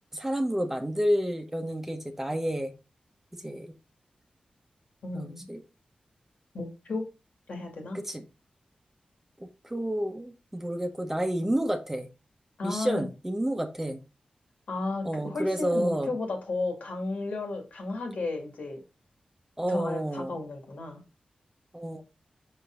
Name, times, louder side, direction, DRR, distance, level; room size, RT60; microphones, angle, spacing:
voice 1, 0.1-2.7 3.3-3.7 5.1-5.6 7.9-8.2 9.4-12.1 12.6-14.0 15.0-16.1 19.6-20.4 21.7-22.0, equal, 15° right, 6 dB, 1.2 m, -30 dB
voice 2, 5.0-5.4 6.5-7.0 7.5-8.0 12.6-13.0 14.7-18.8 19.7-21.0, left 3 dB, 70° left, 3 dB, 2.4 m, -33 dB
5.6 x 5.3 x 3.8 m, 0.27 s
cardioid pair, 70°, 3 cm